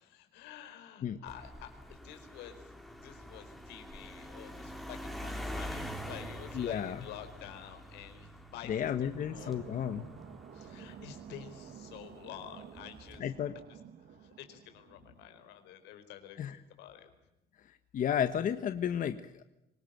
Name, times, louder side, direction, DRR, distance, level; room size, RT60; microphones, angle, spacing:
voice 1, 0.0-9.8 10.5-13.3 13.7-17.1, left 11 dB, 90° left, 8 dB, 4.5 m, -50 dB
sound 1, 1.3-12.0 12.8-13.2, equal, ahead, 3.6 m, -45 dB
voice 2, 6.5-7.1 8.7-10.1 13.2-13.5 16.4-16.6 17.6-19.4, left 9 dB, 50° left, 9 dB, 1.4 m, -33 dB
sound 2, 9.2-15.6, right 8 dB, 60° right, 1.7 m, -51 dB
26.0 x 18.5 x 9.3 m, 0.91 s
cardioid pair, 110°, 17 cm